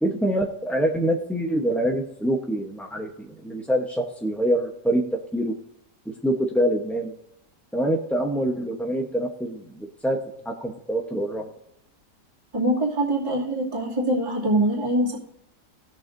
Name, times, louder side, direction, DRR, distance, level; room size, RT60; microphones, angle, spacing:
voice 1, 0.0-5.6 6.1-7.1 7.7-10.2 10.4-11.5, right 1 dB, ahead, 0 dB, 0.5 m, -25 dB
voice 2, 12.5-15.2, right 1 dB, 15° right, -6 dB, 2.6 m, -23 dB
19.0 x 7.2 x 2.6 m, 0.77 s
omnidirectional pair, 1.8 m